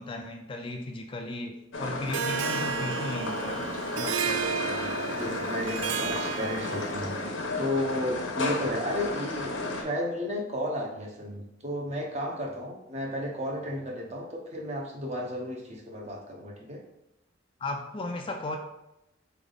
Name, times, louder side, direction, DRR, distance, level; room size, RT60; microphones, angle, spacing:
voice 1, 0.0-3.7 3.9-4.5 17.6-18.6, left 2 dB, 25° left, 3 dB, 0.3 m, -35 dB
sound 1, 1.7-9.8, left 2 dB, 85° left, 0.9 m, -33 dB
Harp, 2.1-7.1, right 7 dB, 75° right, 0.3 m, -32 dB
voice 2, 4.4-16.8, left 1 dB, 35° right, 0 dB, 0.8 m, -33 dB
3.9 x 3.4 x 3.9 m, 0.88 s
head